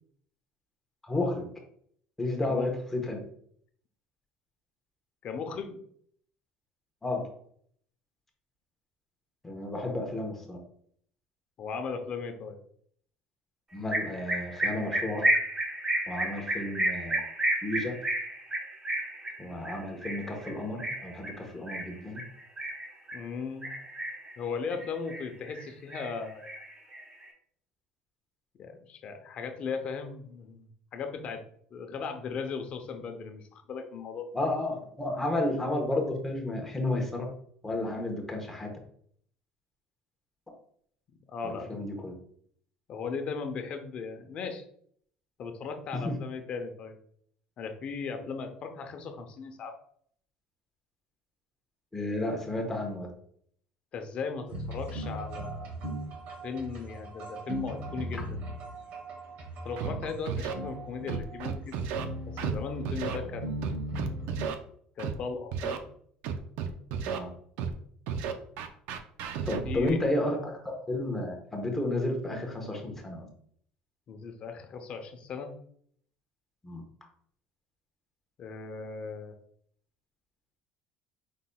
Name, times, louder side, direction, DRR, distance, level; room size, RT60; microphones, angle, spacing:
voice 1, 1.0-1.5 2.2-3.3 7.0-7.3 9.4-10.6 13.7-15.3 16.1-17.2 17.6-17.9 19.4-22.2 34.3-37.3 37.6-38.7 41.4-42.2 45.9-46.1 51.9-53.1 67.0-67.3 69.5-73.3 76.6-76.8, left 1 dB, 10° left, 1 dB, 1.1 m, -32 dB
voice 2, 5.2-5.8 11.6-12.6 23.1-23.8 24.4-26.5 28.6-31.4 31.7-34.3 41.3-41.8 42.9-44.6 45.4-47.0 47.6-49.8 53.9-55.7 56.4-58.4 59.6-61.9 62.2-63.7 65.0-65.9 69.6-70.1 74.1-75.6 78.4-79.3, left 5 dB, 45° left, 6 dB, 0.7 m, -37 dB
sound 1, 13.9-23.2 23.6-24.3 24.7-25.6 25.9-27.2, right 1 dB, 20° right, 1.0 m, -31 dB
sound 2, 54.5-64.5, right 1 dB, 60° right, 1.3 m, -38 dB
Scratching (performance technique), 59.8-59.9 60.3-60.5 61.1-62.0 62.4-62.6 62.9-63.2 63.6-64.5 65.0-65.1 65.5-65.8 66.2-67.2 67.6-67.7 68.1-69.9, right 7 dB, 75° right, 0.5 m, -33 dB
5.2 x 3.9 x 2.3 m, 0.63 s
cardioid pair, 130°, 3 cm